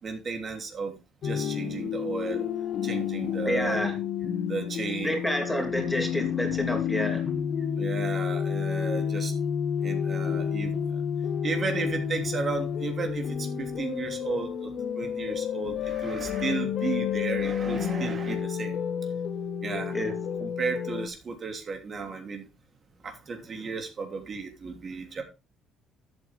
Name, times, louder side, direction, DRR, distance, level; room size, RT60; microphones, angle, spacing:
voice 1, 0.0-3.8 4.5-5.2 7.7-9.3 9.8-11.0 11.4-18.8 19.6-19.9 20.4-22.5 23.0-25.2, right 4 dB, 35° right, 3.1 m, -34 dB
sound 1, 1.2-21.1, left 8 dB, 50° left, 1.9 m, -30 dB
voice 2, 3.4-4.0 5.0-7.3 19.9-20.2, equal, 5° left, 2.9 m, -29 dB
13.0 x 8.5 x 3.5 m
cardioid pair, 135°, 0 cm